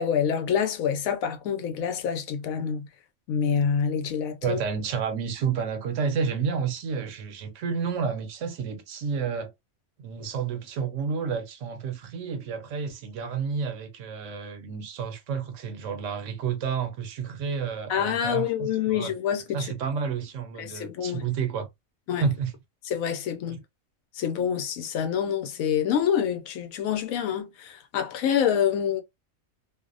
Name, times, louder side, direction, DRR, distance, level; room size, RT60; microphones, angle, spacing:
voice 1, 0.0-2.9 3.3-4.6 17.9-19.7 20.6-21.2 22.1-22.2 22.9-23.6 24.1-29.0, left 8 dB, 80° left, 1.0 m, -27 dB
voice 2, 4.4-9.5 10.0-19.1 19.5-21.7 22.2-22.5 23.5-23.6, right 6 dB, 70° right, 0.9 m, -30 dB
2.6 x 2.1 x 2.3 m
omnidirectional pair, 1.4 m